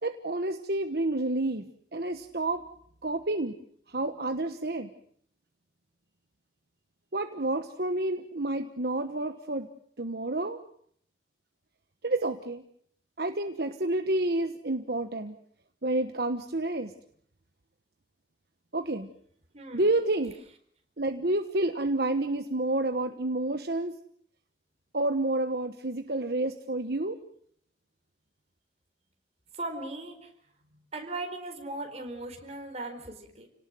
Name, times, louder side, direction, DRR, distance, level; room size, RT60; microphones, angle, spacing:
voice 1, 0.0-2.6 3.0-3.5 3.9-4.9 7.1-9.7 10.0-10.6 12.0-12.6 13.2-15.4 15.8-16.9 18.7-19.1 19.7-20.3 21.0-24.0 24.9-27.2, right 2 dB, 60° right, 7 dB, 1.2 m, -29 dB
voice 2, 19.5-19.9 29.5-30.3 30.9-33.5, right 2 dB, 35° right, 4 dB, 4.5 m, -38 dB
30.0 x 18.5 x 7.7 m, 0.66 s
head